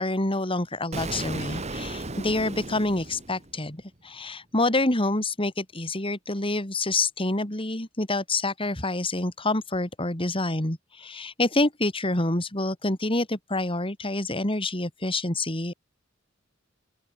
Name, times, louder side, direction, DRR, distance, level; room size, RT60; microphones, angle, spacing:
voice 1, 0.0-15.7, left 2 dB, 30° left, 3.6 m, -27 dB
Explosion, 0.9-3.8, right 2 dB, 35° right, 2.4 m, -35 dB
open air
head